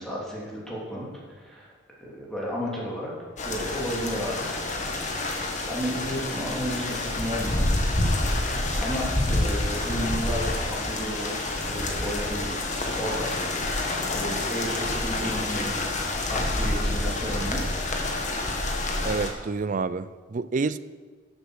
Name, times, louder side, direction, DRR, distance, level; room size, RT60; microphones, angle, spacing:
voice 1, 0.0-1.7 2.0-4.5 5.6-7.7 8.4-13.4 13.9-17.6, equal, 5° left, -5 dB, 3.1 m, -33 dB
sound 1, 3.4-19.3, left 2 dB, 40° left, 1.6 m, -28 dB
voice 2, 19.0-20.8, right 4 dB, 40° right, 15 dB, 0.4 m, -28 dB
12.0 x 8.1 x 6.5 m, 1.5 s
head